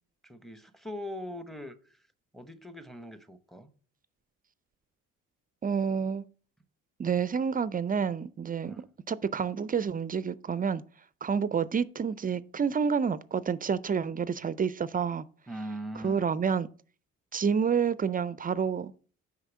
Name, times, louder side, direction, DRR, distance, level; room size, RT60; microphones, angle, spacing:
voice 1, 0.2-2.0 2.3-3.7 8.6-8.8 15.5-16.2, equal, ahead, 0.8 m, -41 dB
voice 2, 5.6-6.2 7.0-10.8 11.2-15.2 16.0-16.7 17.3-18.9, right 6 dB, 25° right, 0.4 m, -29 dB
6.5 x 4.9 x 6.2 m
supercardioid pair, 80°, 32 cm